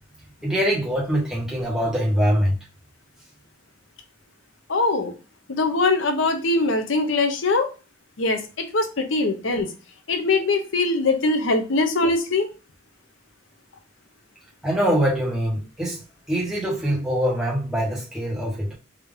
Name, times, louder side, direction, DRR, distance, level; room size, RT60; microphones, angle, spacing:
voice 1, 0.4-2.5 14.6-16.0 16.3-18.7, equal, 5° right, 1.2 m, -23 dB
voice 2, 4.7-5.1 5.5-7.7 8.2-9.7 10.1-12.5, left 3 dB, 80° left, 0.7 m, -22 dB
3.7 x 2.7 x 3.6 m
head